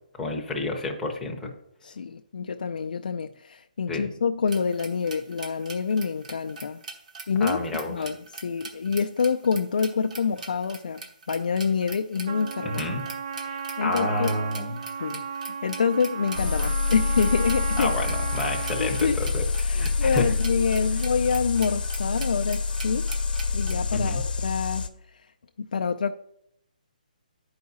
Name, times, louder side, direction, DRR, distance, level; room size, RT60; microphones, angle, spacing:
voice 1, 0.2-1.5 3.9-4.1 7.4-7.9 12.6-13.0 13.5-14.8 17.8-20.3 23.9-24.2, left 2 dB, 5° left, 0.7 m, -30 dB
voice 2, 1.8-6.8 7.3-11.0 11.3-12.9 13.8-14.3 15.0-17.9 18.8-19.2 19.7-23.1 23.5-24.9 25.6-26.1, left 5 dB, 65° left, 0.4 m, -27 dB
sound 1, 4.5-23.7, right 3 dB, 55° right, 1.2 m, -41 dB
Trumpet, 12.2-19.2, right 7 dB, 30° right, 0.3 m, -35 dB
sound 2, 16.3-24.9, left 4 dB, 80° left, 0.8 m, -27 dB
10.5 x 4.8 x 4.1 m
hypercardioid pair, 170°, 5 cm